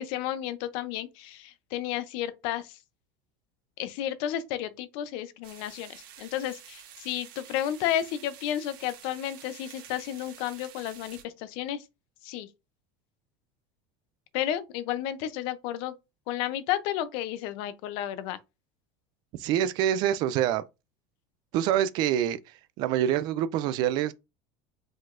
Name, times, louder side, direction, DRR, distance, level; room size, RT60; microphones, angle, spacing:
voice 1, 0.0-2.8 3.8-11.8 12.2-12.5 14.3-15.9 16.3-18.4, left 11 dB, 50° left, 0.6 m, -32 dB
sound 1, 5.4-11.2, right 9 dB, 85° right, 1.7 m, -49 dB
voice 2, 19.4-20.6 21.5-22.4 22.8-24.1, right 11 dB, 40° right, 0.4 m, -25 dB
5.0 x 3.8 x 2.5 m
cardioid pair, 175°, 11 cm